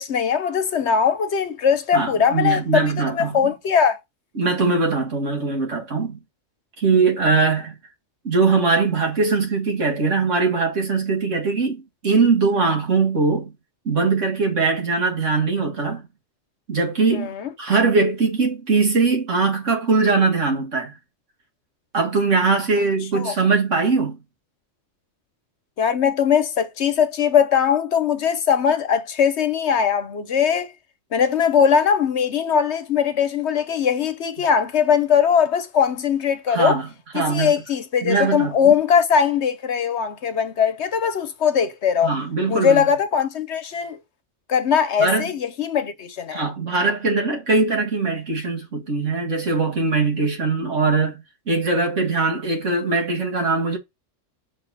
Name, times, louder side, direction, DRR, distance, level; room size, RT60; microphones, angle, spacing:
voice 1, 0.0-4.0 17.1-17.5 23.1-23.3 25.8-30.7 31.1-36.8 37.1-42.1 42.5-44.0 44.5-46.4, left 7 dB, 65° left, 1.1 m, -20 dB
voice 2, 1.9-3.5 4.4-6.2 6.8-7.7 8.2-13.5 13.9-16.0 16.7-21.0 21.9-24.2 34.4-34.5 36.5-36.9 37.1-37.5 38.0-38.7 42.0-42.9 45.0-45.3 46.3-53.8, right 4 dB, 70° right, 2.1 m, -21 dB
6.3 x 4.1 x 4.1 m
omnidirectional pair, 1.3 m